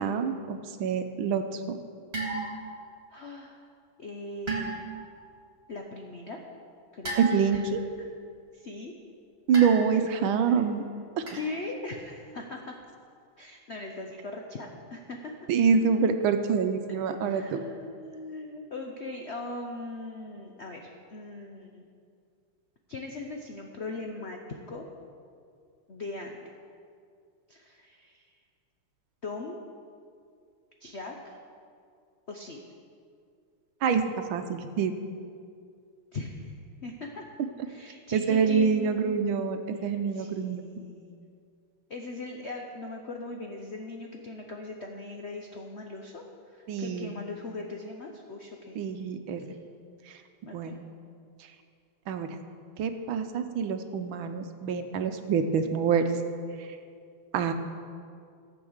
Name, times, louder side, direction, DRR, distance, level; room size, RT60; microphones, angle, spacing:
voice 1, 0.0-1.8 7.2-7.8 9.5-10.8 11.2-11.4 15.5-17.6 33.8-34.9 38.1-40.6 46.7-47.1 48.7-49.6 50.1-50.2 50.5-50.8 52.1-52.3 52.8-56.1 56.6-56.7 57.3-57.5, right 6 dB, 70° right, 8 dB, 1.4 m, -26 dB
sound 1, 2.1-2.8 4.5-5.1 7.0-7.7 9.5-10.1 11.3-11.5, right 3 dB, 30° right, 2.1 m, -35 dB
voice 2, 3.1-3.7 4.0-4.8 5.7-6.4 6.9-7.2 7.5-7.6 8.5-8.9 10.4-10.6 11.3-12.8 13.4-15.3 16.9-21.8 22.9-24.4 24.7-24.9 25.9-26.4 27.5-28.3 29.2-29.6 30.8-31.4 32.3-32.6 36.1-36.5 36.8-37.2 37.7-39.4 39.7-41.2 41.9-46.2 46.5-48.8 50.4-50.8, left 3 dB, 65° left, 2 dB, 0.6 m, -40 dB
14.0 x 7.8 x 6.4 m, 2.3 s
omnidirectional pair, 2.4 m